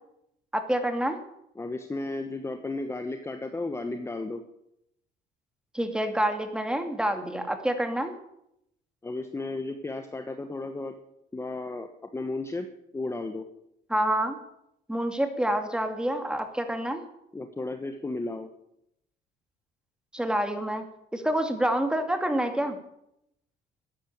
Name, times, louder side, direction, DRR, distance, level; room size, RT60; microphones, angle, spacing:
voice 1, 0.5-1.2 5.7-8.1 13.9-14.4 14.9-17.0 20.1-20.8 21.1-22.8, right 1 dB, 5° right, 6 dB, 2.6 m, -27 dB
voice 2, 1.6-4.4 9.0-10.9 11.3-12.7 12.9-13.5 17.3-18.5, left 2 dB, 15° left, 7 dB, 1.3 m, -34 dB
13.5 x 10.0 x 8.7 m, 0.78 s
cardioid pair, 110°, 17 cm